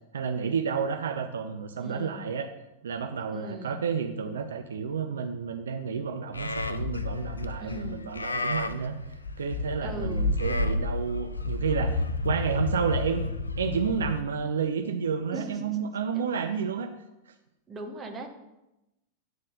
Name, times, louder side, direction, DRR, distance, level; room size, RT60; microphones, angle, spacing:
voice 1, 0.1-2.5 2.8-9.0 9.4-13.3 13.6-16.9, right 6 dB, 65° right, 6 dB, 0.5 m, -30 dB
voice 2, 1.7-2.3 3.3-3.8 7.6-8.1 9.8-10.4 15.3-15.8 16.1-16.3 17.7-18.3, right 1 dB, 20° right, 2 dB, 1.3 m, -39 dB
Livestock farm animals working animals, 6.3-14.2, left 2 dB, 80° left, 0.5 m, -30 dB
9.3 x 3.7 x 6.4 m, 0.94 s
figure-of-eight pair, 90°, 0 cm